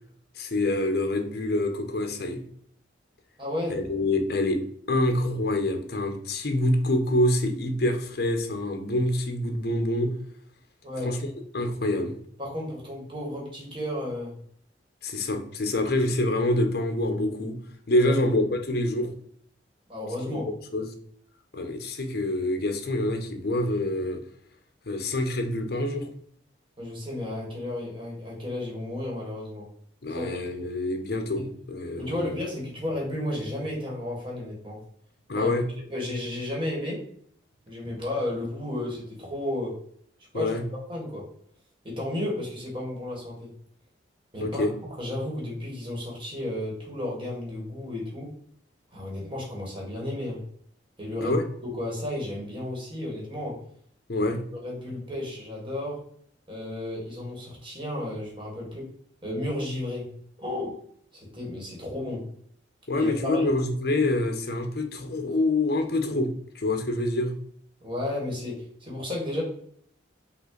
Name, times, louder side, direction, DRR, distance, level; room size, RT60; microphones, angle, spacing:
voice 1, 0.4-2.4 3.7-4.6 4.9-10.1 11.0-11.2 11.5-12.2 15.0-17.6 17.9-19.1 20.3-20.4 20.7-20.9 21.5-24.2 24.9-26.1 30.0-32.3 35.3-35.7 40.3-40.6 44.4-44.7 51.2-51.4 54.1-54.4 62.9-67.3, left 1 dB, 55° left, 5 dB, 0.7 m, -26 dB
voice 2, 3.4-3.8 10.8-11.2 12.4-14.4 18.0-18.2 19.9-20.5 26.8-29.7 30.1-30.3 31.4-31.5 32.0-34.8 35.4-35.5 35.9-37.0 37.7-39.8 40.3-40.5 40.9-41.3 41.8-43.5 44.3-44.6 45.0-48.3 48.9-50.4 51.0-53.6 54.2-56.0 56.5-58.9 59.2-60.8 61.1-62.3 62.9-63.5 67.8-69.4, left 1 dB, 25° right, -3 dB, 1.5 m, -33 dB
5.5 x 2.5 x 3.8 m, 0.63 s
head